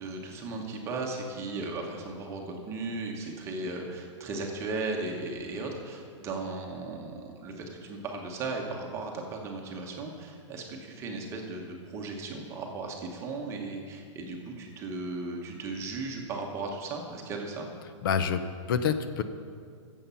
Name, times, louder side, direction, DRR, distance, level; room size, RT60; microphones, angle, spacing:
voice 1, 0.0-17.7, right 3 dB, 15° right, 1 dB, 1.1 m, -36 dB
voice 2, 18.0-19.2, left 7 dB, 45° left, 11 dB, 0.6 m, -27 dB
15.0 x 7.3 x 5.7 m, 2.1 s
hypercardioid pair, 165°, 16 cm